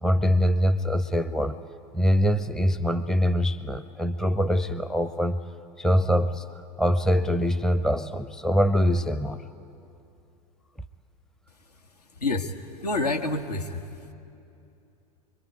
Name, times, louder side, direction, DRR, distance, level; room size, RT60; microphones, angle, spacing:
voice 1, 0.0-1.6 1.9-5.4 5.8-6.4 6.8-9.4, equal, 5° left, 13 dB, 0.6 m, -23 dB
voice 2, 12.1-12.6 12.8-13.9, left 2 dB, 75° left, 5 dB, 1.7 m, -27 dB
25.5 x 23.0 x 9.5 m, 2.7 s
figure-of-eight pair, 85°, 20 cm